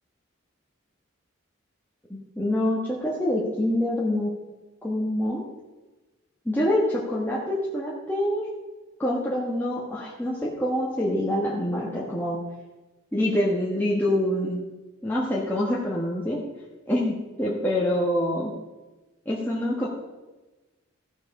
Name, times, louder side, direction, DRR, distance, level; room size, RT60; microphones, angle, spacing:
voice 1, 2.1-4.3 4.8-5.4 6.4-8.5 9.0-12.4 13.1-14.6 15.0-16.4 16.9-18.5 19.2-19.9, left 1 dB, 10° left, -5 dB, 1.3 m, -26 dB
14.0 x 6.2 x 4.8 m, 1.1 s
head